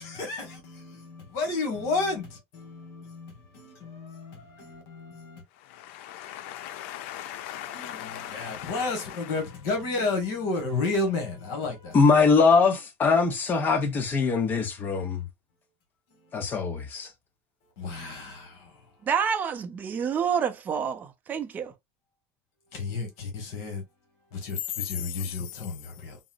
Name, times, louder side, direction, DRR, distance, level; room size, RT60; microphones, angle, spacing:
voice 1, 0.0-5.4 7.6-12.0 16.1-16.4 17.8-18.9 22.7-23.8 24.3-26.2, left 3 dB, 65° left, 1.3 m, -32 dB
voice 2, 5.7-8.8, left 12 dB, 85° left, 0.4 m, -39 dB
voice 3, 11.9-15.3 16.3-17.1, left 4 dB, 30° left, 0.8 m, -22 dB
voice 4, 19.0-21.7, right 7 dB, 30° right, 0.5 m, -28 dB
3.9 x 2.0 x 2.4 m
cardioid pair, 140°, 6 cm